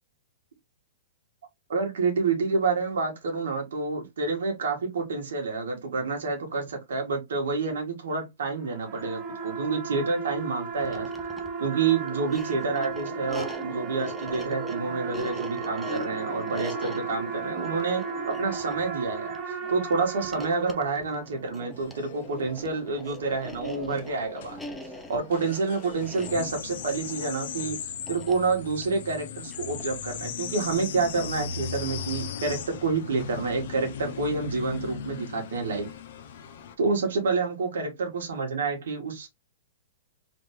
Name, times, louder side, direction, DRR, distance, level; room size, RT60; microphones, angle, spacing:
voice 1, 1.7-11.1 11.6-24.6 25.1-35.9 36.8-39.3, right 4 dB, 80° right, 2.0 m, -28 dB
sound 1, 8.5-21.2, right 5 dB, 25° right, 1.1 m, -35 dB
sound 2, 10.8-30.0, left 1 dB, 5° left, 0.7 m, -43 dB
sound 3, 21.7-36.7, left 8 dB, 65° left, 0.8 m, -38 dB
3.6 x 3.6 x 3.2 m
hypercardioid pair, 140°, 0 cm